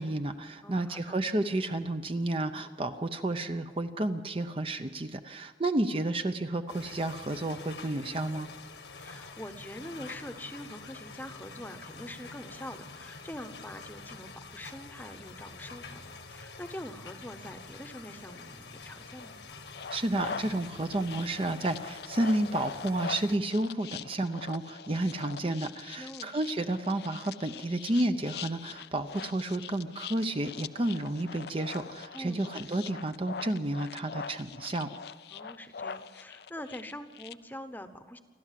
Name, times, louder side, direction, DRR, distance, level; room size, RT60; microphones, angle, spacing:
voice 1, 0.0-8.5 19.9-34.9, right 1 dB, 30° right, 8 dB, 0.7 m, -31 dB
voice 2, 0.6-1.2 8.9-19.4 26.0-26.3 32.1-32.5 35.3-38.2, left 1 dB, 10° left, 9 dB, 1.0 m, -44 dB
sound 1, 6.7-23.4, left 4 dB, 85° left, 1.8 m, -47 dB
sound 2, 19.7-37.3, left 6 dB, 65° left, 0.5 m, -43 dB
28.0 x 12.5 x 7.5 m, 1.4 s
head